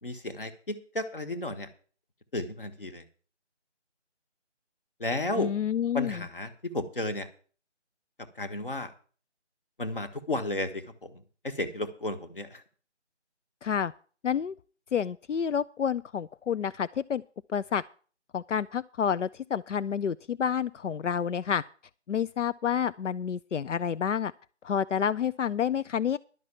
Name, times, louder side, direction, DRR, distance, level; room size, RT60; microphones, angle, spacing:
voice 1, 0.0-1.7 2.3-3.0 5.0-5.5 5.9-7.3 8.3-8.9 9.8-12.6, left 2 dB, 50° left, 8 dB, 1.4 m, -33 dB
voice 2, 5.4-6.2 13.6-13.9 14.2-14.5 14.9-17.2 17.5-17.8 18.3-21.6 22.1-24.3 24.6-26.2, left 8 dB, 85° left, 15 dB, 0.5 m, -29 dB
11.0 x 6.0 x 8.5 m, 0.41 s
figure-of-eight pair, 175°, 36 cm